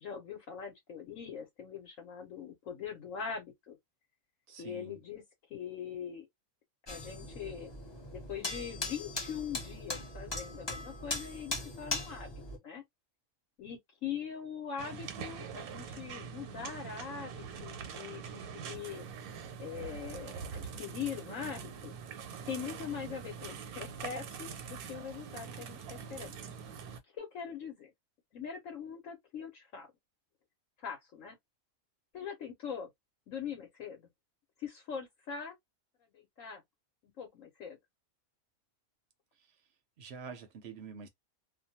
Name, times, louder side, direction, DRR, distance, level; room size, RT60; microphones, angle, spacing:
voice 1, 0.0-3.8 4.6-5.2 5.5-6.3 6.9-7.7 8.1-12.3 12.6-12.8 13.6-19.0 19.6-21.9 22.5-26.3 27.1-27.9 28.3-29.9 30.8-31.4 32.1-32.9 33.3-34.0 34.6-35.5 36.1-36.6 37.2-37.8, left 7 dB, 65° left, 1.1 m, -42 dB
voice 2, 4.5-5.0 40.0-41.1, right 5 dB, 60° right, 0.8 m, -46 dB
sound 1, 6.9-12.6, left 2 dB, 25° left, 0.7 m, -39 dB
sound 2, 14.8-27.0, right 6 dB, 90° right, 1.1 m, -44 dB
2.6 x 2.2 x 2.7 m
omnidirectional pair, 1.5 m